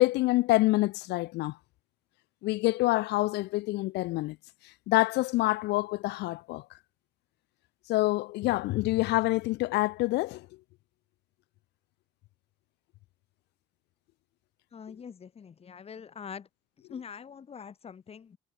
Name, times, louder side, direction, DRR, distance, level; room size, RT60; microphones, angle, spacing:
voice 1, 0.0-1.6 2.4-4.4 4.6-6.8 7.9-10.5, left 19 dB, 85° left, 1.4 m, -27 dB
voice 2, 14.7-16.5 16.9-18.4, left 7 dB, 35° left, 2.8 m, -44 dB
cardioid pair, 110°, 17 cm